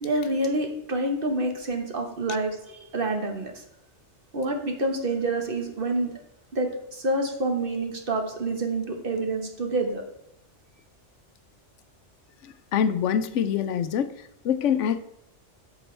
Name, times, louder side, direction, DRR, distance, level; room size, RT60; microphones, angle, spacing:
voice 1, 0.0-3.6 4.3-6.1 6.5-10.0, right 2 dB, 50° right, 4 dB, 1.3 m, -27 dB
voice 2, 12.7-14.1 14.4-15.0, left 8 dB, 85° left, 12 dB, 0.9 m, -24 dB
10.0 x 6.1 x 3.3 m, 0.85 s
omnidirectional pair, 1.2 m